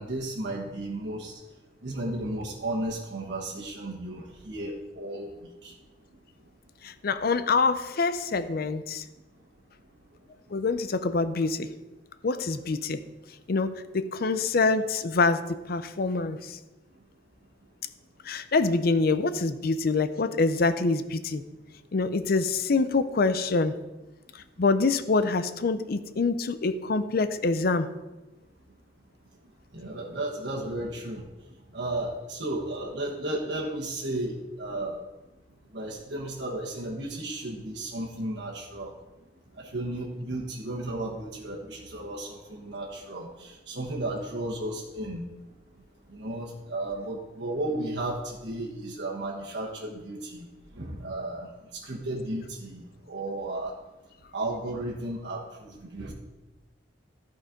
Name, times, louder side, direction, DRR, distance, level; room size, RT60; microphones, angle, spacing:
voice 1, 0.0-1.3 1.8-5.3 5.6-5.7 29.7-31.2 31.7-35.0 35.7-38.9 39.6-45.3 46.1-50.5 50.7-51.5 51.8-52.8 53.1-53.7 54.3-56.1, right 1 dB, 70° right, -4 dB, 1.4 m, -34 dB
voice 2, 6.8-9.0 10.5-11.7 12.2-13.0 13.5-16.6 18.2-21.4 21.9-23.7 24.3-27.9, left 3 dB, 55° left, 12 dB, 0.6 m, -25 dB
12.5 x 4.5 x 5.2 m, 1.1 s
head